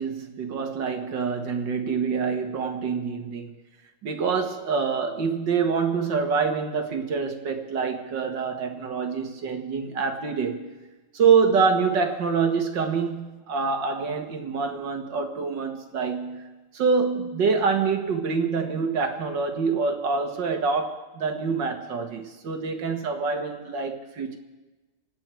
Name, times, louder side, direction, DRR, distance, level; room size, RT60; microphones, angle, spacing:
voice 1, 0.0-3.5 4.0-10.7 11.1-16.5 16.7-24.4, right 5 dB, 85° right, 4 dB, 2.2 m, -26 dB
28.5 x 9.9 x 4.5 m, 1.2 s
omnidirectional pair, 1.9 m